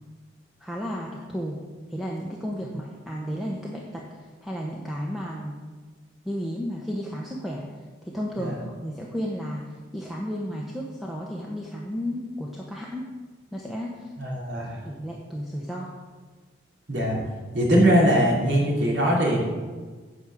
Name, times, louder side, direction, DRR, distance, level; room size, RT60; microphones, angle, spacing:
voice 1, 0.6-1.6 1.9-4.0 4.4-5.6 6.2-7.7 8.1-13.1 13.5-14.1 14.8-15.9, equal, ahead, -3 dB, 0.7 m, -33 dB
voice 2, 14.2-14.8 16.9-17.2 17.5-19.4, equal, 75° right, -3 dB, 2.7 m, -21 dB
8.7 x 4.9 x 6.5 m, 1.4 s
head